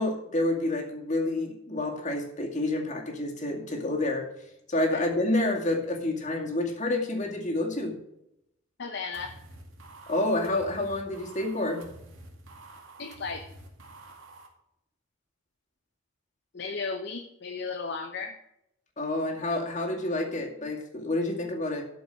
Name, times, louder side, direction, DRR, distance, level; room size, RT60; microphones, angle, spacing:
voice 1, 0.0-4.2 4.7-8.0 10.1-11.8 19.0-21.8, left 2 dB, 35° left, 1 dB, 2.2 m, -28 dB
voice 2, 8.8-9.3 13.0-13.5 16.5-18.4, left 4 dB, 55° left, 5 dB, 0.8 m, -35 dB
sound 1, 9.1-14.5, right 1 dB, 75° right, 2.3 m, -49 dB
12.5 x 5.3 x 6.4 m, 0.80 s
head